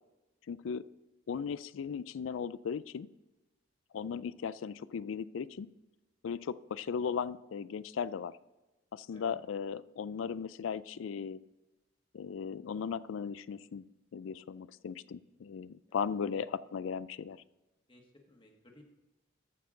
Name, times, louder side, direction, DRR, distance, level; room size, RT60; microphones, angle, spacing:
voice 1, 0.5-0.9 1.3-3.1 3.9-5.7 6.2-8.3 8.9-11.4 12.1-13.8 14.1-17.4, left 6 dB, 80° left, 18 dB, 0.4 m, -37 dB
voice 2, 17.9-18.8, left 1 dB, 25° left, 2 dB, 1.5 m, -59 dB
14.0 x 5.8 x 3.8 m, 1.1 s
head